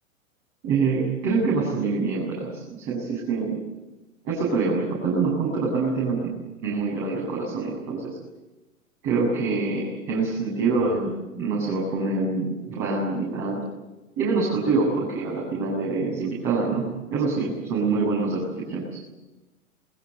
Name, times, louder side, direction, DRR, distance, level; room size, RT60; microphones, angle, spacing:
voice 1, 0.6-3.6 4.2-6.3 6.6-8.2 9.0-13.6 14.2-19.0, right 4 dB, 35° right, -3 dB, 7.6 m, -25 dB
28.5 x 20.0 x 8.1 m, 1.1 s
figure-of-eight pair, 100°, 41 cm